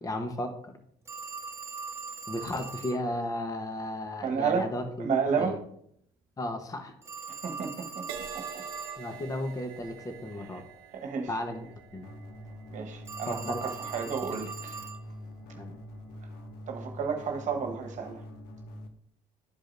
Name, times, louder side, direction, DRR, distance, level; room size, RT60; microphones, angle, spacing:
voice 1, 0.0-0.5 2.3-5.1 5.4-5.6 6.4-6.9 9.0-10.6 11.3-11.7 11.9-12.1 13.3-13.6 15.6-15.8, left 1 dB, 20° left, 1.0 m, -34 dB
Telephone, 1.1-3.0 7.0-9.1 13.0-15.0, right 5 dB, 15° right, 1.2 m, -40 dB
voice 2, 4.2-4.7 5.0-5.6 7.3-8.1 8.3-8.6 10.5-10.6 10.9-11.3 12.7-14.9 16.7-18.2, right 6 dB, 50° right, 1.3 m, -31 dB
Crash cymbal, 8.1-15.7 16.4-16.7, right 7 dB, 90° right, 0.8 m, -48 dB
sound 1, 12.0-18.9, left 1 dB, 75° left, 1.0 m, -45 dB
12.0 x 4.9 x 2.6 m
cardioid pair, 100°, 16 cm